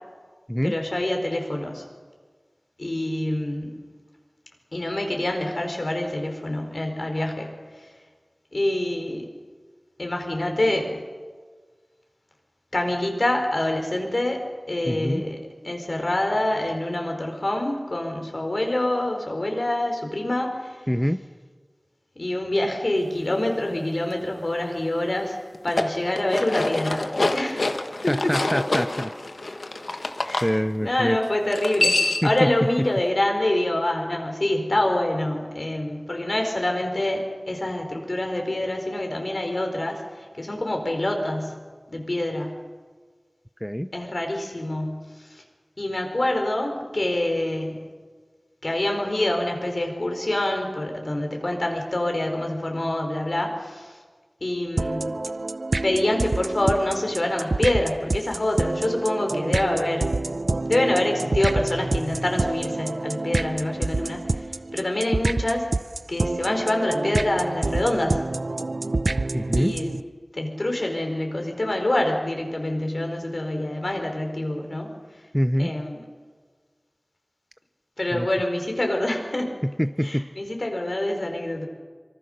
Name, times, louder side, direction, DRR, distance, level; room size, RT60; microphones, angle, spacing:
voice 1, 0.6-1.8 2.8-3.8 4.7-7.5 7.8-7.9 8.5-9.3 10.0-11.0 12.7-14.4 14.7-15.4 15.6-20.8 22.1-25.4 25.6-27.1 27.3-27.8 28.0-28.3 30.2-30.5 30.8-41.5 41.9-42.6 43.9-45.4 45.8-47.8 48.6-54.0 54.4-55.1 55.8-60.1 60.7-64.5 64.7-65.7 66.1-68.2 69.6-70.0 70.3-74.9 75.6-76.0 78.0-79.5 80.0-81.7, left 1 dB, 60° left, 3 dB, 4.6 m, -26 dB
voice 2, 14.9-15.2 20.9-21.2 28.1-29.1 30.4-31.2 32.2-32.9 43.6-43.9 69.3-69.7 75.3-75.7 78.1-78.3 79.6-80.3, equal, 5° left, 10 dB, 0.7 m, -25 dB
sound 1, 25.5-30.5 31.5-32.4, left 2 dB, 80° left, 1.4 m, -26 dB
sound 2, 54.8-70.0, right 2 dB, 70° right, 0.6 m, -27 dB
25.5 x 24.0 x 6.7 m, 1.5 s
wide cardioid pair, 55°, 0 cm